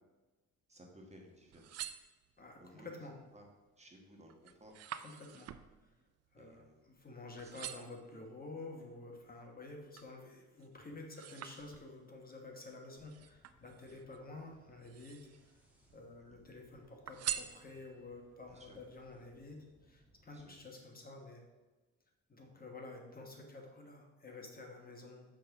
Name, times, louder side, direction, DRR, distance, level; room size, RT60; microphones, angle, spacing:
voice 1, 0.7-1.9 2.6-2.9 3.3-3.4 3.8-4.3 4.6-4.7 6.4-6.7 16.3-16.4 18.5-18.8 20.3-20.4, right 1 dB, 20° right, 1 dB, 1.4 m, -58 dB
sound 1, 1.4-2.7 3.2-3.6 4.0-7.1 7.4-8.1 8.7-10.2 10.6-12.2 13.0-14.2 14.7-15.5 15.9-16.6 17.1-18.1 18.6-18.7, right 10 dB, 55° right, 0.5 m, -46 dB
voice 2, 2.4-3.2 5.0-5.5 5.8-5.9 6.3-15.2 15.9-21.4 22.3-25.2, left 2 dB, 30° left, 2 dB, 1.3 m, -50 dB
sound 2, 13.0-20.6, equal, 5° right, 1.7 m, -69 dB
6.7 x 3.8 x 5.8 m, 1.2 s
cardioid pair, 90°, 30 cm